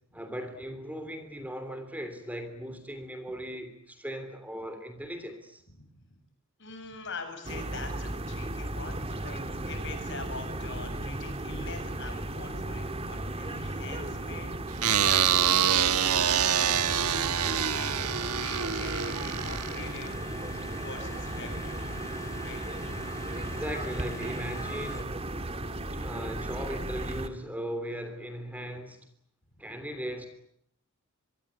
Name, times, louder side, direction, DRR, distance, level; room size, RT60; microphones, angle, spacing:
voice 1, 0.1-5.6 9.6-9.7 23.3-25.1 25.9-29.1 29.6-30.3, equal, 5° right, 9 dB, 3.2 m, -38 dB
voice 2, 6.6-20.2 20.7-22.6, left 4 dB, 55° left, 7 dB, 7.5 m, -44 dB
sound 1, 7.4-27.3, right 1 dB, 25° right, 2.0 m, -36 dB
sound 2, 14.8-20.1, right 9 dB, 90° right, 1.3 m, -26 dB
sound 3, 15.0-25.0, left 2 dB, 15° left, 3.8 m, -45 dB
24.0 x 24.0 x 9.9 m, 0.70 s
head